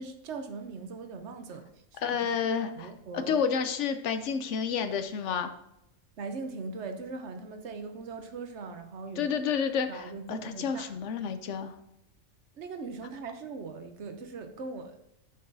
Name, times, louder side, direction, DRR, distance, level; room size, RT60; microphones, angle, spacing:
voice 1, 0.0-1.6 1.9-2.2 2.8-3.4 6.2-9.3 9.9-10.9 12.6-15.0, right 4 dB, 65° right, 6 dB, 1.0 m, -40 dB
voice 2, 2.0-5.5 9.2-11.7, left 6 dB, 70° left, 9 dB, 0.9 m, -30 dB
11.5 x 5.4 x 2.6 m, 0.81 s
omnidirectional pair, 1.3 m